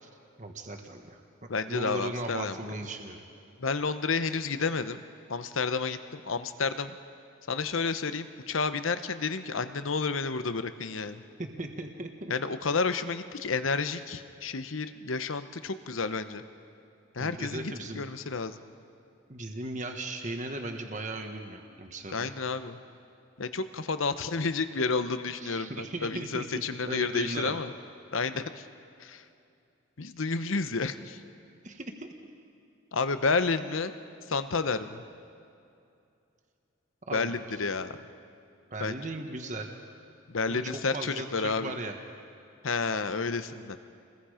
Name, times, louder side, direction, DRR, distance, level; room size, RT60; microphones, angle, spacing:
voice 1, 0.4-3.3 11.4-12.3 17.2-18.0 19.3-22.3 25.3-26.5 26.8-27.6 31.6-32.1 37.1-37.3 38.7-39.7 40.5-41.9, right 2 dB, 35° right, 4 dB, 1.4 m, -37 dB
voice 2, 1.5-2.6 3.6-5.0 5.3-7.0 7.5-11.2 12.3-16.4 17.1-18.6 22.1-22.8 23.4-27.7 28.1-28.6 29.0-29.2 30.0-31.2 32.9-33.9 34.3-35.0 37.1-37.9 38.8-39.0 40.3-41.8 42.6-43.8, left 4 dB, 75° left, 11 dB, 0.9 m, -30 dB
29.5 x 21.0 x 5.0 m, 2.6 s
head